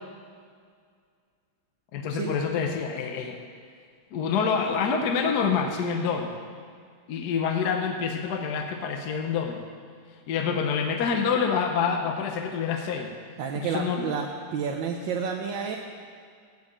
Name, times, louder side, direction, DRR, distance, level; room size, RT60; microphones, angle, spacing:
voice 1, 1.9-3.4 4.1-6.4 7.1-9.6 10.3-13.1 13.5-14.1, left 6 dB, 65° left, 4 dB, 1.2 m, -27 dB
voice 2, 13.4-15.8, right 6 dB, 85° right, 1 dB, 1.5 m, -30 dB
8.1 x 7.9 x 8.5 m, 2.1 s
omnidirectional pair, 2.0 m